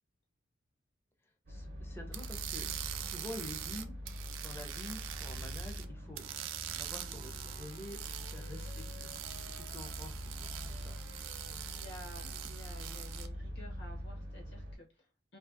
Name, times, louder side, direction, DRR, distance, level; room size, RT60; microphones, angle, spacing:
voice 1, 1.5-2.7 3.0-4.0 4.4-6.3 6.7-9.1 9.5-11.0, left 1 dB, 10° left, 3 dB, 0.4 m, -48 dB
sound 1, 1.5-14.8, equal, 55° right, 0.6 m, -44 dB
sound 2, 2.1-5.9 6.2-13.3, right 11 dB, 90° right, 0.3 m, -44 dB
Wind instrument woodwind instrument, 6.9-13.2, left 4 dB, 85° left, 1.0 m, -58 dB
voice 2, 11.6-15.4, equal, 65° left, 1 dB, 0.7 m, -53 dB
2.6 x 2.5 x 2.4 m, 0.30 s
head